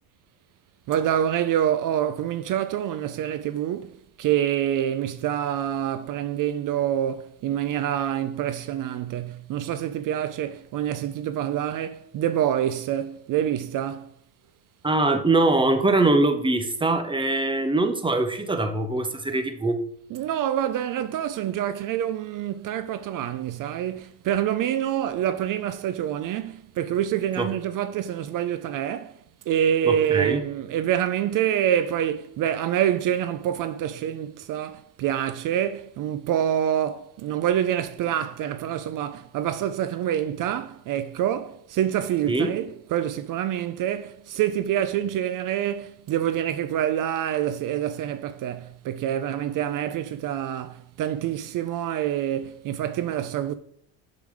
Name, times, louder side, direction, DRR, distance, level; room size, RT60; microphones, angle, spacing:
voice 1, 0.9-14.1 20.1-29.1 29.5-53.5, right 10 dB, 50° right, 0.5 m, -26 dB
voice 2, 14.8-19.8 27.4-27.5 29.8-30.4 42.3-42.5, right 2 dB, 10° right, 0.9 m, -22 dB
7.0 x 4.0 x 4.9 m
supercardioid pair, 105°, 42 cm